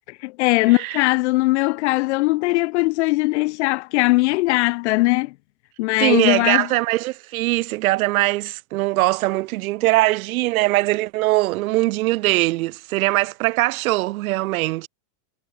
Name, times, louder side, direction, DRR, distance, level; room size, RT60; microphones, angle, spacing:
voice 1, 0.1-5.3 5.8-6.7, left 22 dB, 40° left, 1.1 m, -20 dB
voice 2, 6.0-14.9, right 19 dB, 55° right, 4.1 m, -21 dB
supercardioid pair, 180°, 50 cm